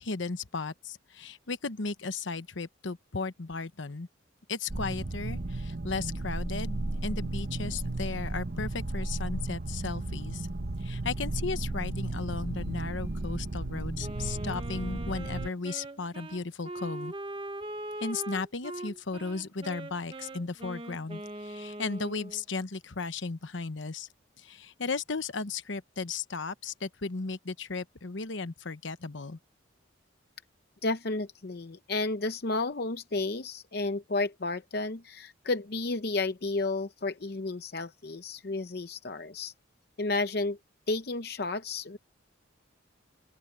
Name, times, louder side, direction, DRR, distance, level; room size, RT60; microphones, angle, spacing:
voice 1, 0.0-4.1 4.5-10.5 10.8-17.1 18.0-24.1 24.4-29.4, left 4 dB, 70° left, 1.0 m, -35 dB
sound 1, 4.7-15.5, right 2 dB, 50° right, 1.0 m, -34 dB
Wind instrument woodwind instrument, 14.0-22.4, right 1 dB, 25° right, 0.9 m, -41 dB
voice 2, 30.8-39.5 40.0-40.6 40.9-42.0, left 3 dB, 55° left, 0.7 m, -32 dB
open air
head